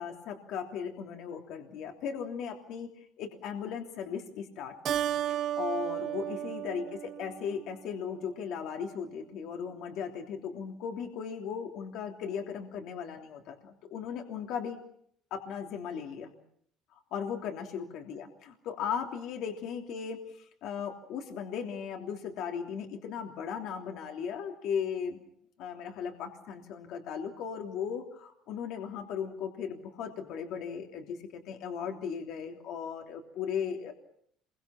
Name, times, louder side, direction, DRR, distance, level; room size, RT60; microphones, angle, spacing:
voice 1, 0.0-2.9 3.2-5.0 5.3-14.8 15.3-16.3 17.1-25.2 25.6-33.9, left 7 dB, 60° left, 3 dB, 3.2 m, -37 dB
Keyboard (musical), 4.8-7.7, right 11 dB, 40° right, 1.2 m, -33 dB
27.5 x 23.5 x 6.0 m, 0.66 s
cardioid pair, 160°, 0 cm